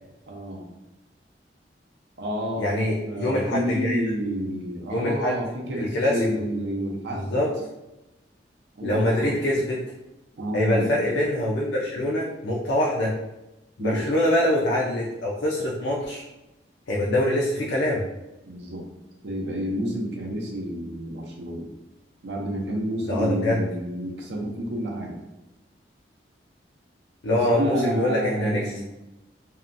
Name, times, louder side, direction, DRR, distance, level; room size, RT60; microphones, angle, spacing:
voice 1, 0.3-0.7 2.2-7.4 8.7-9.4 10.4-10.9 13.8-14.0 18.4-18.9 19.2-21.7 22.2-25.2 27.3-28.8, equal, 70° right, -1 dB, 0.6 m, -29 dB
voice 2, 2.6-4.0 4.9-5.4 5.8-6.4 7.1-7.6 8.8-9.8 10.5-13.1 13.8-16.2 16.9-18.0 23.1-23.6 27.2-28.7, left 1 dB, 80° left, -4 dB, 0.4 m, -24 dB
2.7 x 2.2 x 2.5 m, 1.0 s
head